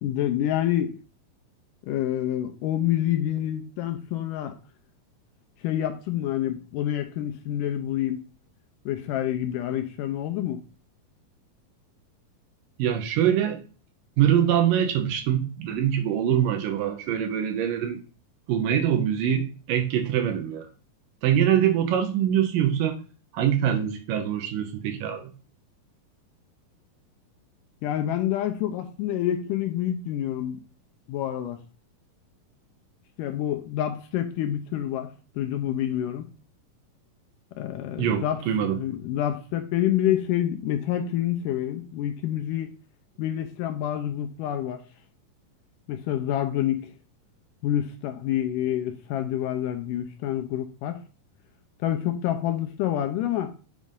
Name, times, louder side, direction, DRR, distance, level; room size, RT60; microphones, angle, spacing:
voice 1, 0.0-1.0 1.9-4.6 5.6-8.3 8.9-10.6 27.8-30.6 31.1-31.6 33.2-36.3 37.6-42.7 43.2-44.8 45.9-46.9 47.6-51.0 51.8-53.5, left 11 dB, 80° left, 2.0 m, -27 dB
voice 2, 12.8-13.6 14.2-18.0 18.5-20.7 21.2-23.0 23.3-25.3 38.0-38.8, right 9 dB, 75° right, 2.4 m, -24 dB
7.3 x 4.1 x 3.6 m
omnidirectional pair, 4.1 m